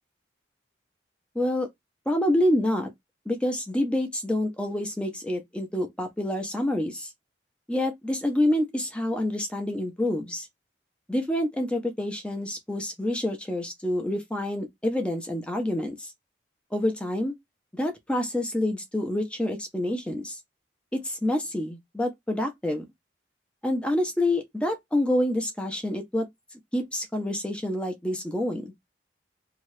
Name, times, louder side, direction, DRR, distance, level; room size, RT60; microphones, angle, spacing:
voice 1, 1.3-1.7 2.1-2.9 3.3-7.1 7.7-10.5 11.1-16.1 16.7-17.3 17.7-20.4 20.9-22.8 23.6-26.3 26.7-28.7, left 1 dB, 5° left, 0.6 m, -27 dB
2.8 x 2.3 x 3.1 m
head